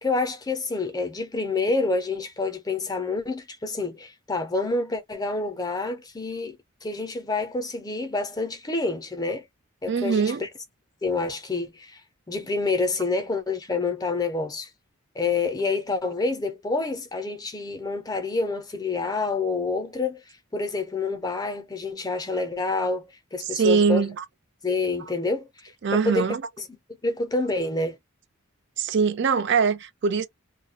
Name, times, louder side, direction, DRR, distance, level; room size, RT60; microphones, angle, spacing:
voice 1, 0.0-9.4 9.8-10.5 11.0-12.0 12.3-14.7 15.2-20.2 20.5-24.1 24.6-26.7 27.0-28.0, left 3 dB, 20° left, 0.5 m, -28 dB
voice 2, 9.9-10.4 23.4-24.2 25.8-26.4 28.8-30.3, right 5 dB, 55° right, 0.4 m, -22 dB
2.2 x 2.0 x 2.7 m
head